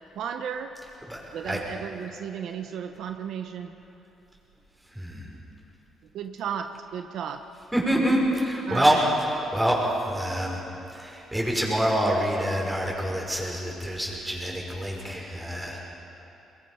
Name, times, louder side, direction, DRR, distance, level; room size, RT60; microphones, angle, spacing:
voice 1, 0.1-0.7 1.3-3.7 6.1-7.4 8.7-9.1, right 8 dB, 75° right, 7 dB, 1.0 m, -34 dB
voice 2, 1.1-1.6 4.8-5.3 7.7-10.6 10.9-15.8, equal, 10° right, -2 dB, 5.9 m, -26 dB
22.5 x 22.5 x 5.8 m, 2.9 s
cardioid pair, 90°, 0 cm